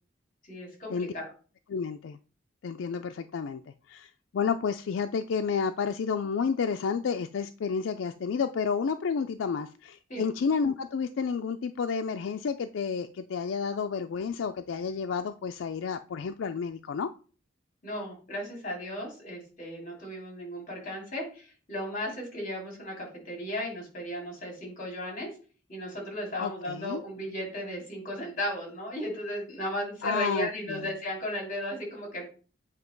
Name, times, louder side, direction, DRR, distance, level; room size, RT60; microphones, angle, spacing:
voice 1, 0.5-1.3 10.1-10.3 17.8-25.3 25.7-32.2, equal, 45° left, -1 dB, 3.2 m, -35 dB
voice 2, 1.7-2.2 2.6-3.6 3.9-17.1 26.4-27.0 30.0-30.9, left 6 dB, 75° left, 7 dB, 0.4 m, -30 dB
8.1 x 2.9 x 5.2 m, 0.38 s
head